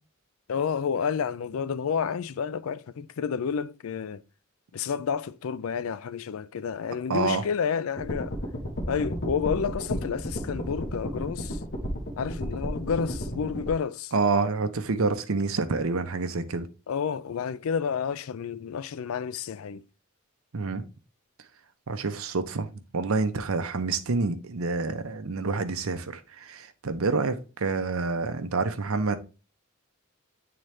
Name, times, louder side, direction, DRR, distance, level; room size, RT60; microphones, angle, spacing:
voice 1, 0.5-4.2 4.7-8.4 8.9-11.6 12.2-14.1 16.9-19.8, left 6 dB, 85° left, 0.4 m, -30 dB
voice 2, 7.1-7.4 14.1-16.7 20.5-20.9 21.9-29.2, right 4 dB, 85° right, 0.7 m, -28 dB
sound 1, 8.0-13.7, equal, 55° left, 1.2 m, -33 dB
8.8 x 3.9 x 3.2 m
head